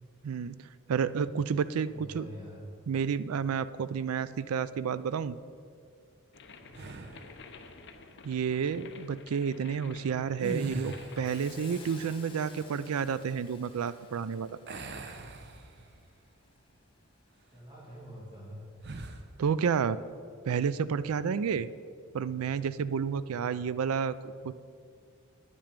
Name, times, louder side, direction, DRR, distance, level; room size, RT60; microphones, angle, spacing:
voice 1, 0.2-0.6 0.9-2.3 2.9-5.4 8.2-14.6 19.4-20.0 20.4-21.7 22.1-24.5, right 6 dB, 90° right, 16 dB, 0.4 m, -30 dB
voice 2, 1.3-2.7 6.6-7.2 17.5-18.7, equal, 20° right, -4 dB, 1.6 m, -47 dB
sound 1, 6.3-12.0, left 4 dB, 60° left, 0.8 m, -51 dB
sound 2, 6.7-7.4 10.3-11.4 14.7-16.1 16.6-16.8 18.8-19.3, right 2 dB, 55° right, 0.7 m, -39 dB
Hiss, 10.4-17.5 17.9-18.0, left 4 dB, 25° left, 1.3 m, -55 dB
10.0 x 8.8 x 5.2 m, 2.2 s
head